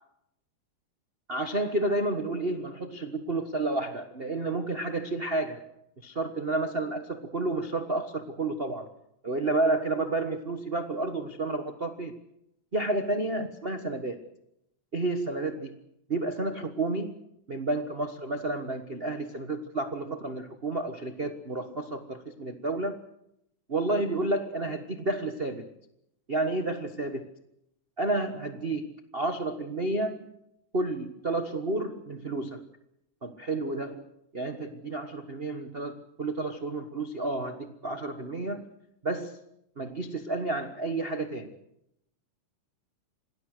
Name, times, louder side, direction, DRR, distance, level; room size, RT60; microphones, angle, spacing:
voice 1, 1.3-5.6 6.0-8.9 9.2-12.2 12.7-14.2 14.9-15.8 16.1-17.1 17.5-23.0 23.7-25.7 26.3-27.2 28.0-30.3 30.7-32.7 33.2-34.1 34.3-38.7 39.0-39.4 39.8-41.6, right 2 dB, 80° right, 6 dB, 0.5 m, -31 dB
27.0 x 19.5 x 6.6 m, 0.79 s
omnidirectional pair, 3.5 m